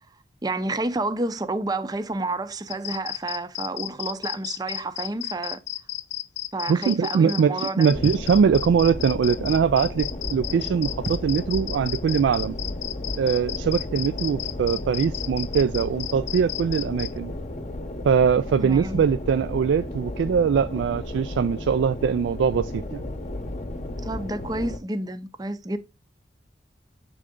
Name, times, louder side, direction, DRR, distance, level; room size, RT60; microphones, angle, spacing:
voice 1, 0.4-5.6 6.5-7.9 18.6-19.0 24.0-25.8, right 2 dB, 20° right, 0.5 m, -30 dB
sound 1, 2.7-17.1, left 15 dB, 75° left, 0.4 m, -33 dB
voice 2, 6.7-12.5 13.1-17.3 18.0-23.0, right 6 dB, 85° right, 0.3 m, -22 dB
sound 2, 7.9-24.8, left 1 dB, 40° left, 0.8 m, -34 dB
sound 3, 8.0-8.5 11.1-11.6, right 2 dB, 70° right, 1.2 m, -35 dB
7.7 x 3.7 x 3.6 m
head